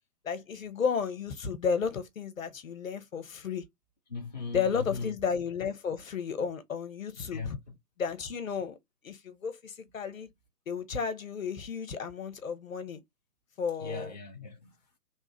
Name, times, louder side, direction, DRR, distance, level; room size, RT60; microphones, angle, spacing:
voice 1, 0.2-3.6 4.5-7.6 8.0-8.8 9.0-10.3 10.7-13.0 13.6-14.1, left 6 dB, 60° left, 1.0 m, -33 dB
voice 2, 4.1-5.1 7.2-7.6 13.8-14.7, left 4 dB, 30° left, 0.4 m, -38 dB
3.1 x 2.4 x 4.3 m
figure-of-eight pair, 125°, 47 cm